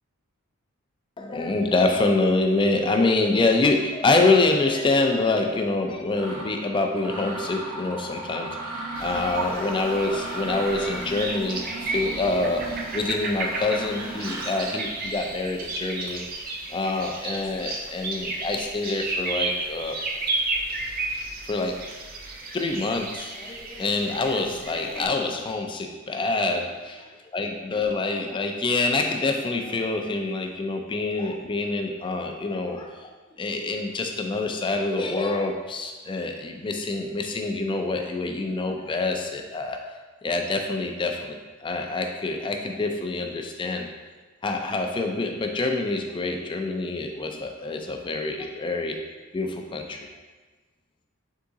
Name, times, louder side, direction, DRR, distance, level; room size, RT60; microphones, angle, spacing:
voice 1, 1.2-8.5 9.0-16.2 16.7-20.0 21.4-21.8 22.5-26.8 27.3-33.1 33.4-39.8 40.2-43.9 44.4-49.0 49.3-50.1, left 3 dB, 20° left, 4 dB, 0.3 m, -26 dB
Mechanisms, 5.5-5.6 6.1-6.5 7.0-14.8, right 2 dB, 75° right, 1.2 m, -36 dB
sound 1, 8.9-25.1, right 2 dB, 40° right, 0.4 m, -33 dB
3.6 x 3.6 x 3.9 m, 1.3 s
head